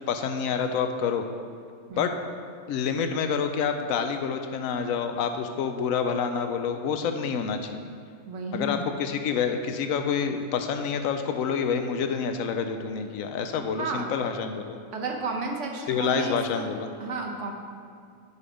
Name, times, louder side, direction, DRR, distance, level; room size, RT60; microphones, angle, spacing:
voice 1, 0.1-1.3 2.0-2.1 2.7-7.8 8.5-14.8 15.9-16.9, left 6 dB, 75° left, 7 dB, 1.0 m, -28 dB
voice 2, 8.3-8.8 13.8-14.1 14.9-16.7 17.0-17.5, right 3 dB, 60° right, 1 dB, 1.2 m, -32 dB
9.7 x 4.2 x 5.0 m, 2.3 s
omnidirectional pair, 1.5 m